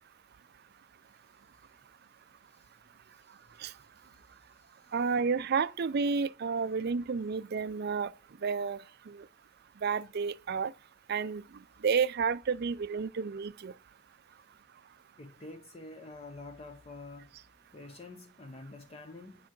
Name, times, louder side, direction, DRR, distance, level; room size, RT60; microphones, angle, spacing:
voice 1, 3.1-4.9 15.2-17.3 17.7-19.5, left 2 dB, 30° left, 0.7 m, -49 dB
voice 2, 4.9-8.1 8.4-8.8 9.1-9.2 9.8-10.7 11.1-11.4 11.8-13.7, right 5 dB, 50° right, 0.4 m, -30 dB
10.0 x 4.8 x 5.9 m
head